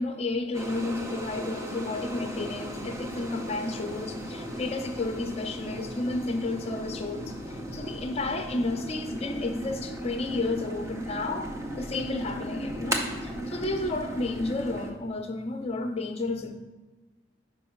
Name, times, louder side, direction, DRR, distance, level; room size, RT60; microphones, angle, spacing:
voice 1, 0.0-11.5 11.8-16.5, left 2 dB, 30° left, 5 dB, 0.6 m, -32 dB
sound 1, 0.5-14.9, right 1 dB, 15° right, 0.5 m, -36 dB
5.4 x 4.6 x 5.7 m, 1.2 s
head